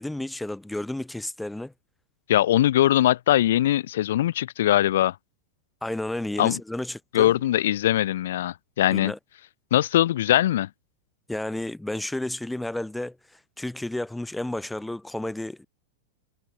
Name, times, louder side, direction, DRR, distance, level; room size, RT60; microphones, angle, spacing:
voice 1, 0.0-1.7 5.8-7.3 8.9-9.2 11.3-15.7, left 1 dB, 5° left, 1.8 m, -32 dB
voice 2, 2.3-5.1 6.4-6.6 7.1-9.1 9.7-10.7, left 13 dB, 60° left, 1.5 m, -21 dB
figure-of-eight pair, 90°, 0 cm